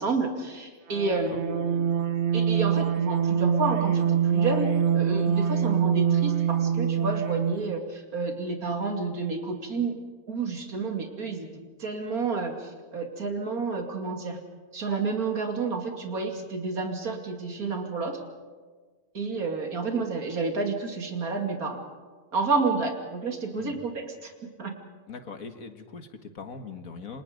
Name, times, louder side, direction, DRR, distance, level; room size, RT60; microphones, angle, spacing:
voice 1, 0.0-1.8 2.3-4.7 4.9-10.0 10.3-11.5 11.8-14.4 14.7-18.2 19.1-21.8 22.3-24.3 24.6-24.7, right 4 dB, 75° right, 3 dB, 3.0 m, -30 dB
sound 1, 0.9-7.7, right 7 dB, 55° right, 1.2 m, -25 dB
voice 2, 25.1-27.2, left 5 dB, 70° left, 7 dB, 2.1 m, -41 dB
28.5 x 25.5 x 5.2 m, 1.5 s
omnidirectional pair, 1.6 m